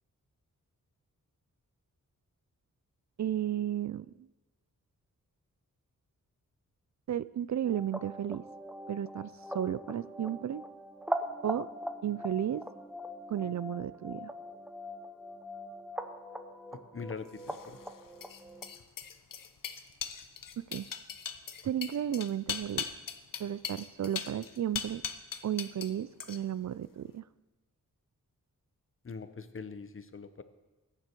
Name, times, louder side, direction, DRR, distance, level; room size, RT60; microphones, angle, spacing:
voice 1, 3.2-4.3 7.1-8.4 8.9-10.6 11.4-11.7 12.0-12.6 13.3-14.3 20.6-20.9 21.6-22.9 23.4-25.0 25.4-27.2, right 10 dB, 60° right, 17 dB, 0.4 m, -33 dB
sound 1, 7.6-18.7, equal, 5° right, 0.9 m, -41 dB
voice 2, 16.9-17.8 29.0-30.4, left 5 dB, 40° left, 11 dB, 0.9 m, -42 dB
sound 2, 17.4-25.9 26.2-26.7, left 7 dB, 80° left, 0.9 m, -39 dB
21.5 x 9.7 x 4.6 m, 1.1 s
wide cardioid pair, 160°, 33 cm